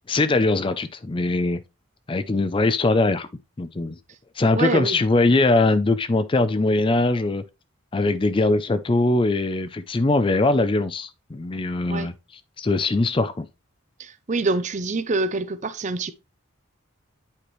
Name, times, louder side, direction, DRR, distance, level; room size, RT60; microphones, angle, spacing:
voice 1, 0.1-1.6 2.1-3.3 3.6-4.0 4.4-7.4 7.9-12.1 12.6-13.5, left 2 dB, 25° left, 0.4 m, -21 dB
voice 2, 4.5-5.0 11.9-12.1 14.0-16.1, right 3 dB, 35° right, 0.5 m, -25 dB
8.6 x 4.9 x 3.1 m
head